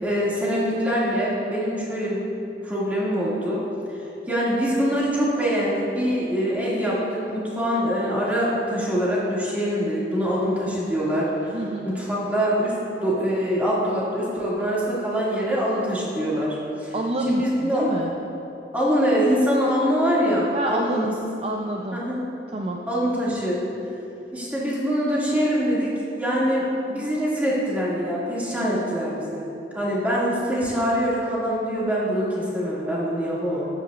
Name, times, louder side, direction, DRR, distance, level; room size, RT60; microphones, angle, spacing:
voice 1, 0.0-2.2 2.6-3.6 3.9-11.6 11.8-16.9 17.3-17.8 18.7-21.1 21.9-22.2 22.9-23.6 24.3-25.9 26.2-29.4 29.7-33.7, equal, 10° right, -7 dB, 2.1 m, -24 dB
voice 2, 11.5-11.9 16.9-18.1 20.5-22.0 22.5-22.9, right 1 dB, 35° right, 0 dB, 0.5 m, -28 dB
13.5 x 10.0 x 2.4 m, 2.8 s
head